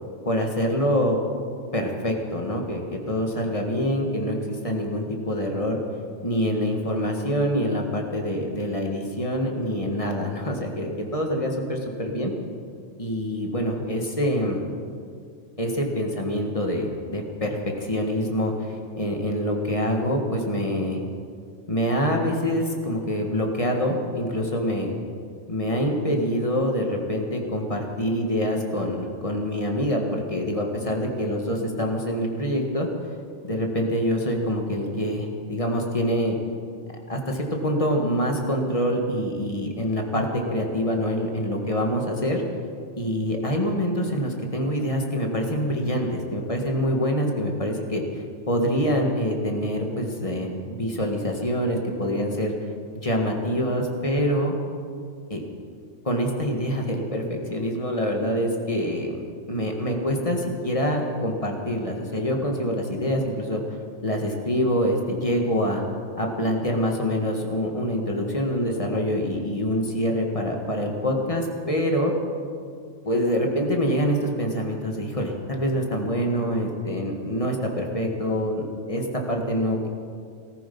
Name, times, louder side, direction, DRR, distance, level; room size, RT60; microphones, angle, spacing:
voice 1, 0.3-1.2 1.7-5.8 6.2-12.3 13.0-14.6 15.6-18.7 19.0-21.0 21.7-24.9 25.5-32.9 33.4-36.4 37.1-42.4 43.0-48.0 48.5-52.5 53.0-54.5 55.3-55.4 56.1-59.2 59.5-63.6 64.0-65.8 66.2-72.1 73.0-79.9, equal, 25° left, 1 dB, 1.9 m, -25 dB
18.5 x 14.0 x 5.5 m, 2.2 s
omnidirectional pair, 1.3 m